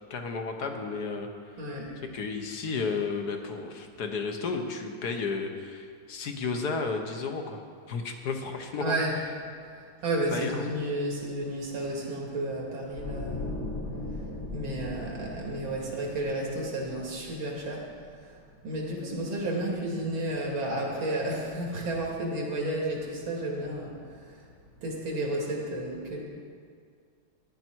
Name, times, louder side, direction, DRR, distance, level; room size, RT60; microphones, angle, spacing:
voice 1, 0.1-1.3 2.0-7.6 7.9-9.0 10.3-10.7, left 4 dB, 60° left, 4 dB, 1.4 m, -32 dB
voice 2, 1.6-1.9 8.8-9.1 9.7-13.6 14.5-17.9 18.2-18.3 18.6-23.9 24.8-26.2, right 1 dB, 85° right, -2 dB, 3.0 m, -32 dB
sound 1, 12.9-18.0 18.3-18.5, left 2 dB, 35° left, 1.6 m, -39 dB
14.0 x 10.5 x 4.6 m, 2.1 s
omnidirectional pair, 2.2 m